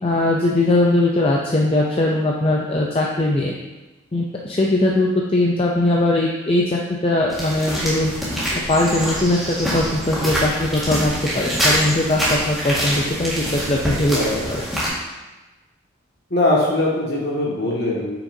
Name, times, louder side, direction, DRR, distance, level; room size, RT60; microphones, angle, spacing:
voice 1, 0.0-3.5 4.1-8.1 8.7-14.2 14.5-14.6, left 2 dB, 25° left, -2 dB, 0.5 m, -20 dB
sound 1, 7.3-14.9, equal, ahead, 1.7 m, -25 dB
voice 2, 14.1-14.5 16.3-18.1, left 2 dB, 50° left, -5 dB, 1.9 m, -21 dB
8.7 x 5.8 x 2.7 m, 1.1 s
head